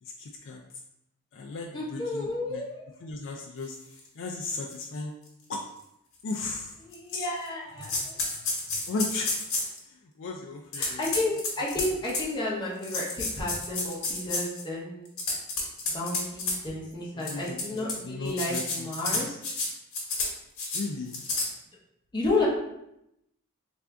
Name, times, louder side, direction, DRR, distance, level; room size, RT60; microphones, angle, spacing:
voice 1, 0.0-0.6 1.3-2.6 3.0-3.8 4.2-5.1 5.5-5.6 6.2-6.8 7.1-7.3 8.9-9.3 9.8-11.0 17.1-19.3 20.7-21.2, left 3 dB, 60° left, 0 dB, 0.3 m, -36 dB
voice 2, 1.7-3.0 6.8-8.2 10.8-15.1 15.9-19.4 22.1-22.5, left 2 dB, 20° left, -5 dB, 0.7 m, -32 dB
sound 1, 4.0-4.1 4.7-4.8 5.3-5.4 6.3-6.4 6.9-7.5 7.8-9.8 10.7-12.3 12.8-14.6 15.1-16.6 17.2-17.9 18.3-19.7 19.9-20.3 20.6-20.8 21.1-21.5, left 3 dB, 80° left, 1.0 m, -30 dB
3.4 x 2.5 x 3.4 m, 0.81 s
head